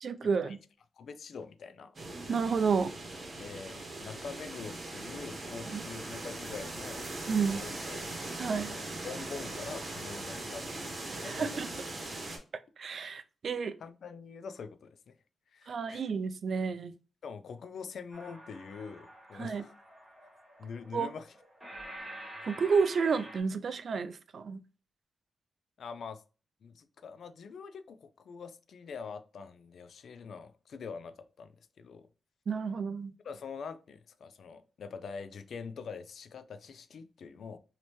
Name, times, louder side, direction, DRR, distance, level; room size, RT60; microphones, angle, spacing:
voice 1, 0.0-0.6 2.3-2.9 5.7-5.8 7.3-7.6 8.4-8.7 11.1-11.7 12.8-13.7 15.7-16.9 19.3-19.6 20.9-21.1 22.2-24.6 32.5-33.1, right 5 dB, 60° right, 0.3 m, -31 dB
voice 2, 1.0-2.0 3.4-7.1 7.5-8.0 8.5-11.7 13.8-15.1 15.5-16.0 17.2-19.7 20.6-21.3 25.8-26.2 26.6-31.5 31.8-32.1 33.2-37.6, left 5 dB, 75° left, 0.4 m, -44 dB
sound 1, 1.9-12.4, right 2 dB, 45° right, 1.1 m, -40 dB
sound 2, 18.1-23.4, right 1 dB, 5° right, 1.3 m, -48 dB
3.1 x 2.8 x 2.9 m
cardioid pair, 95°, 0 cm